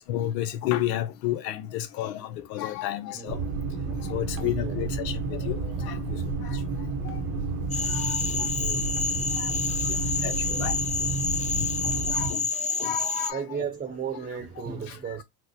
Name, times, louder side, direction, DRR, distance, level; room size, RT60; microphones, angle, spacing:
voice 1, 0.1-3.4 3.9-6.6 7.0-7.2 7.8-8.5 9.3-9.6 9.8-10.7 11.6-13.7 14.3-14.4 14.9-15.2, left 13 dB, 85° left, 0.7 m, -32 dB
sound 1, 3.3-12.3, right 3 dB, 90° right, 1.0 m, -31 dB
voice 2, 4.4-4.9 8.3-8.9 12.0-12.1 13.3-15.2, right 7 dB, 20° right, 0.8 m, -35 dB
Cricket / Frog, 7.7-13.3, left 4 dB, 15° left, 0.6 m, -28 dB
4.4 x 2.0 x 2.9 m
supercardioid pair, 95°, 48 cm